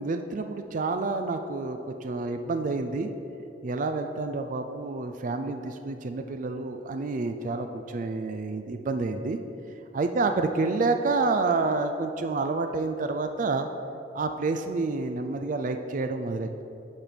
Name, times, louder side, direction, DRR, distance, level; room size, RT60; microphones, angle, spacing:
voice 1, 0.0-3.1 3.6-9.4 9.9-13.7 14.1-16.5, right 3 dB, 45° right, 7 dB, 0.4 m, -28 dB
11.0 x 4.5 x 5.1 m, 2.8 s
head